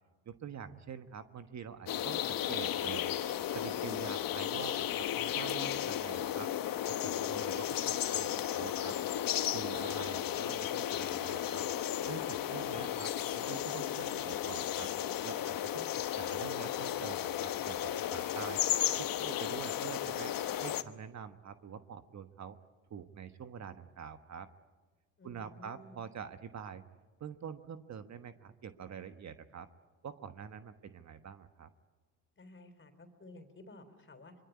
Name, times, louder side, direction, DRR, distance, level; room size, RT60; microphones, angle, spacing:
voice 1, 0.2-3.1 3.5-6.5 6.9-9.0 9.5-11.7 12.1-14.9 15.2-18.6 19.0-20.3 20.6-22.6 22.9-24.5 25.2-26.8 27.2-29.7 30.0-31.7, right 7 dB, 40° right, 9 dB, 1.3 m, -46 dB
sound 1, 1.9-20.8, left 11 dB, 55° left, 1.3 m, -34 dB
voice 2, 25.2-26.0 32.4-34.3, left 2 dB, 30° left, 9 dB, 4.0 m, -54 dB
25.5 x 22.0 x 9.6 m, 1.3 s
supercardioid pair, 80°, 40 cm